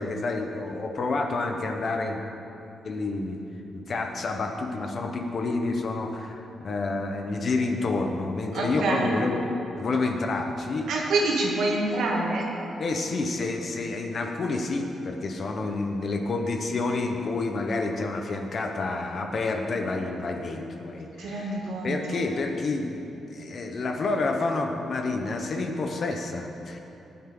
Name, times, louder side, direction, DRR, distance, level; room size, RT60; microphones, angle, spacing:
voice 1, 0.0-2.2 2.8-3.4 3.7-9.5 9.8-10.9 12.8-26.8, left 3 dB, 40° left, 3 dB, 1.1 m, -29 dB
voice 2, 8.5-9.1 10.9-12.5 21.2-22.3, right 2 dB, 85° right, -2 dB, 2.4 m, -26 dB
18.0 x 9.6 x 3.9 m, 2.9 s
wide cardioid pair, 170°, 0 cm